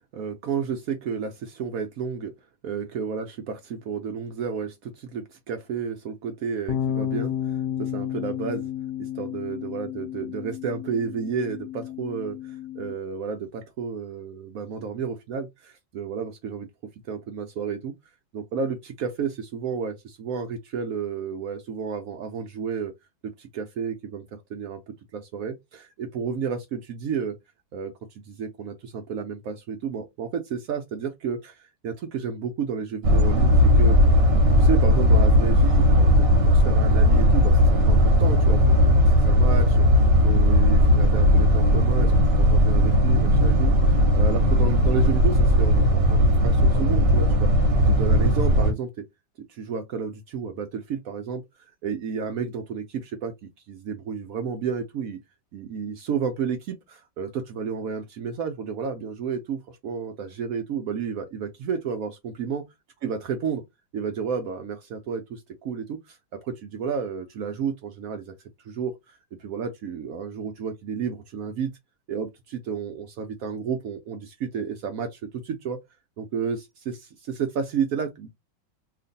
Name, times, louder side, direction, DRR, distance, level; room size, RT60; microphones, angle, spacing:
voice 1, 0.1-2.3 2.6-8.7 9.0-17.9 18.3-22.9 23.2-27.4 27.7-34.0 34.6-39.9 40.2-47.5 47.9-49.1 49.5-51.4 51.8-53.3 53.7-55.2 55.5-62.6 63.0-63.6 63.9-68.3 68.6-71.7 72.1-75.8 76.2-78.3, right 6 dB, 85° right, 0.7 m, -31 dB
sound 1, 6.7-12.9, left 10 dB, 75° left, 1.2 m, -32 dB
sound 2, 33.0-48.7, equal, 50° right, 0.7 m, -18 dB
2.9 x 2.5 x 3.9 m
omnidirectional pair, 2.1 m